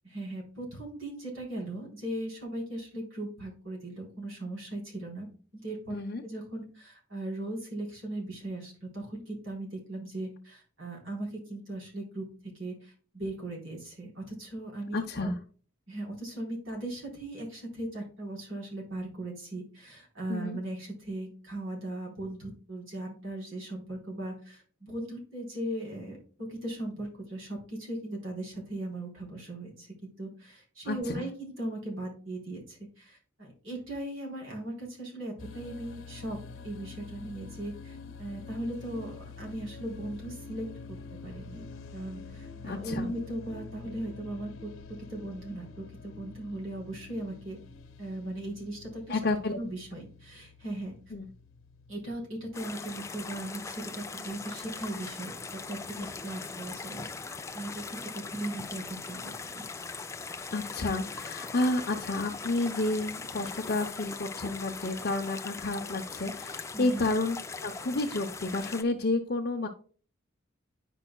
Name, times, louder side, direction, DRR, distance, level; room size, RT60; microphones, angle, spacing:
voice 1, 0.0-5.3 5.5-6.0 6.2-12.3 12.5-15.3 15.9-36.4 36.6-41.0 41.2-41.6 41.9-44.7 45.1-47.6 48.0-49.2 49.5-50.9 51.9-59.6 66.7-67.1, right 1 dB, 65° right, -1 dB, 3.8 m, -38 dB
voice 2, 5.9-6.2 14.9-15.3 20.3-20.6 30.9-31.2 42.6-43.1 49.1-49.6 51.1-51.3 56.0-56.1 60.5-69.7, left 2 dB, 45° left, 0 dB, 0.7 m, -30 dB
sound 1, 35.4-52.1, left 4 dB, 80° left, 1.1 m, -47 dB
sound 2, 52.5-68.8, left 4 dB, 15° left, 0.3 m, -40 dB
9.9 x 5.4 x 2.3 m, 0.40 s
head